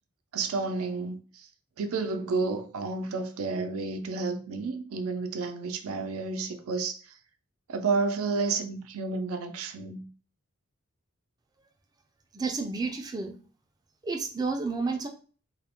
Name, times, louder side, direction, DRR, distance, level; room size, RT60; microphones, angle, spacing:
voice 1, 0.3-1.5 1.8-7.1 7.7-10.1, right 4 dB, 85° right, 0.4 m, -31 dB
voice 2, 12.3-13.4 14.0-15.1, right 4 dB, 20° right, 0.3 m, -30 dB
2.3 x 2.0 x 2.8 m
head